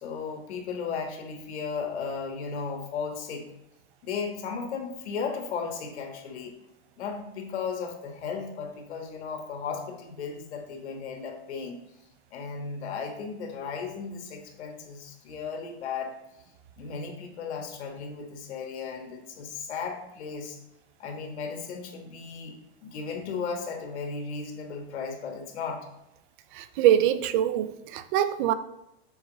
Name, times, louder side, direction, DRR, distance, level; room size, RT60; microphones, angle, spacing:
voice 1, 0.0-3.5 4.0-6.6 7.0-11.8 12.3-16.2 16.8-20.6 21.0-25.9, left 5 dB, 85° left, 1.4 m, -35 dB
voice 2, 26.5-28.5, right 11 dB, 50° right, 0.5 m, -24 dB
7.0 x 4.0 x 3.9 m
supercardioid pair, 150°, 33 cm